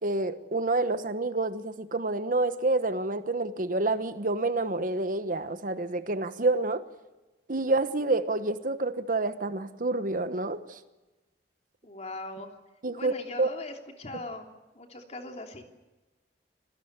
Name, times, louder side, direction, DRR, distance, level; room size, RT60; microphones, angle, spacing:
voice 1, 0.0-6.8 7.5-10.8 12.8-13.5, right 2 dB, 50° right, 11 dB, 1.2 m, -28 dB
voice 2, 11.8-12.5 12.9-14.5 14.7-15.7, left 2 dB, 40° left, 3 dB, 3.1 m, -40 dB
26.5 x 18.0 x 8.1 m, 1.1 s
head